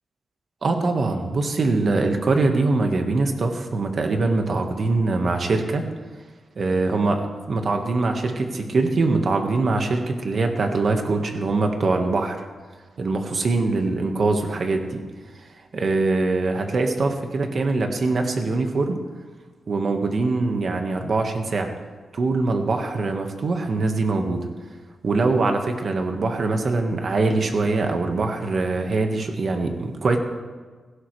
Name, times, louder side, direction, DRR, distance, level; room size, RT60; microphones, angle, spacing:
voice 1, 0.6-5.8 6.6-12.4 13.0-15.0 15.4-15.5 15.7-19.0 19.7-21.7 22.1-24.5 25.0-30.2, right 3 dB, 50° right, 4 dB, 1.6 m, -23 dB
17.0 x 16.5 x 3.4 m, 1.4 s
wide cardioid pair, 125°, 0 cm